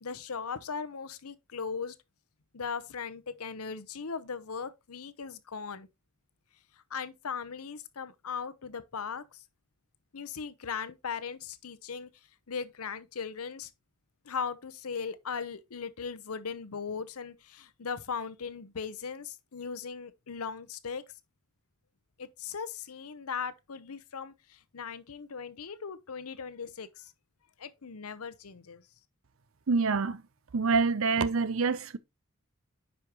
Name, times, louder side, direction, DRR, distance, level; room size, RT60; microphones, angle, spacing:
voice 1, 0.0-1.9 2.5-5.9 6.9-9.4 10.1-12.1 12.5-13.7 14.2-21.0 22.2-27.1 27.6-28.8, left 6 dB, 80° left, 0.8 m, -38 dB
voice 2, 29.7-30.2 30.5-32.0, right 4 dB, 65° right, 0.6 m, -26 dB
9.7 x 5.0 x 2.9 m
head